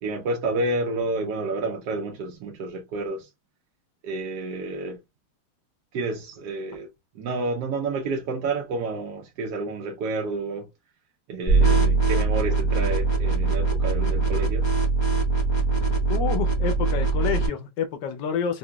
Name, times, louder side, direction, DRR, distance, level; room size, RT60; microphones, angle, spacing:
voice 1, 0.0-3.3 4.0-5.0 5.9-6.9 7.1-10.7 11.3-14.6, right 3 dB, 70° right, 1.2 m, -29 dB
sound 1, 11.5-17.5, right 3 dB, 25° left, 0.6 m, -22 dB
voice 2, 16.1-18.6, left 7 dB, 80° left, 1.4 m, -28 dB
4.9 x 2.2 x 2.2 m
omnidirectional pair, 1.9 m